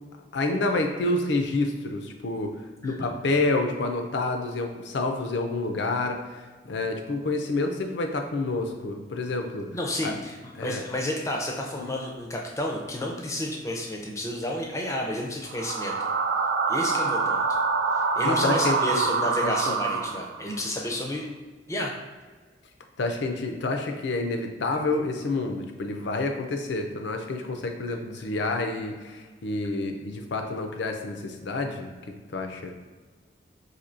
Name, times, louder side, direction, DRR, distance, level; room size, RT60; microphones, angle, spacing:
voice 1, 0.3-2.5 2.8-9.7 10.0-10.1 10.6-10.8 11.8-11.9 18.2-19.7 23.0-32.7, left 2 dB, 75° left, 4 dB, 0.5 m, -28 dB
voice 2, 9.7-16.1 16.7-17.6 17.9-21.3 21.7-21.9, left 1 dB, 15° left, 0 dB, 0.4 m, -31 dB
sound 1, 15.5-20.6, right 4 dB, 80° right, 0.3 m, -26 dB
4.3 x 2.7 x 2.6 m, 1.4 s
head